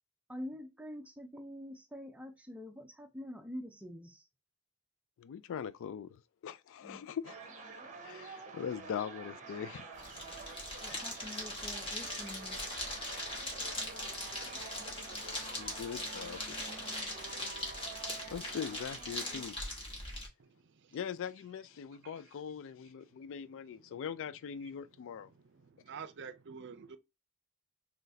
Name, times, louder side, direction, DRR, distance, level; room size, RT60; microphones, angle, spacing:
voice 1, 0.3-4.2 6.8-7.0 10.8-12.6, left 1 dB, 5° right, 0.6 m, -46 dB
voice 2, 5.2-7.5 8.0-9.8 15.6-16.6 18.3-19.6 20.9-25.3, left 7 dB, 60° left, 0.3 m, -41 dB
sound 1, 7.2-19.4, right 4 dB, 35° right, 0.9 m, -48 dB
sound 2, 9.9-20.3, left 1 dB, 25° left, 1.3 m, -41 dB
voice 3, 25.5-27.0, right 6 dB, 55° right, 0.5 m, -47 dB
3.9 x 3.2 x 2.7 m
head